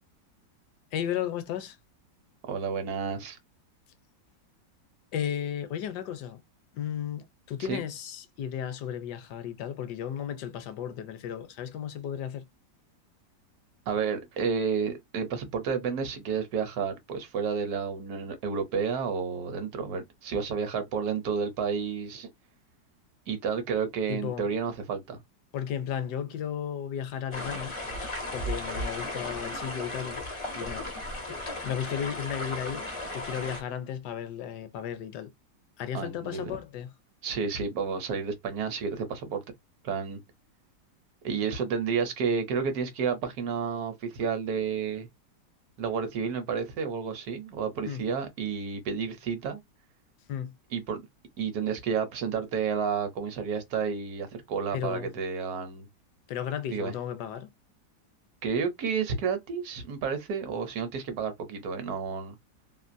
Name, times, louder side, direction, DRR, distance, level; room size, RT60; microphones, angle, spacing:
voice 1, 0.9-1.8 5.1-6.4 6.7-12.5 24.1-24.5 25.5-27.8 28.3-30.2 30.5-30.9 31.2-31.3 31.6-32.9 33.1-35.3 35.8-36.9 47.8-48.0 50.3-50.6 54.7-55.1 56.3-57.5, left 9 dB, 75° left, 1.1 m, -34 dB
voice 2, 2.4-3.4 7.7-7.8 13.9-22.3 23.3-25.2 35.9-36.5 37.2-39.4 39.8-40.2 41.2-45.1 45.8-49.6 50.7-51.0 51.4-55.9 56.7-56.9 58.4-62.4, right 6 dB, 65° right, 1.1 m, -31 dB
sound 1, 27.3-33.6, left 1 dB, 55° left, 0.3 m, -35 dB
3.0 x 2.4 x 2.5 m
omnidirectional pair, 2.0 m